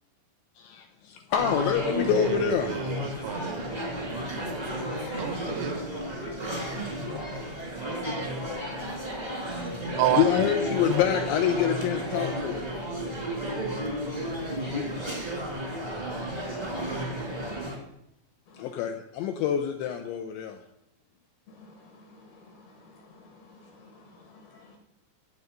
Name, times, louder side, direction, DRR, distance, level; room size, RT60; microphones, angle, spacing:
voice 1, 0.6-2.9 3.7-3.8 4.5-5.4 6.2-7.4 7.8-12.7 14.7-14.8 18.6-20.6, left 9 dB, 80° left, 5 dB, 2.6 m, -28 dB
sound 1, 1.3-17.8, equal, 25° right, 0.9 m, -33 dB
voice 2, 2.1-4.1 5.2-5.7 10.0-10.5, right 13 dB, 80° right, 11 dB, 3.5 m, -30 dB
voice 3, 21.6-24.8, left 2 dB, 65° left, 3 dB, 2.6 m, -53 dB
15.5 x 8.5 x 5.2 m, 0.79 s
omnidirectional pair, 5.9 m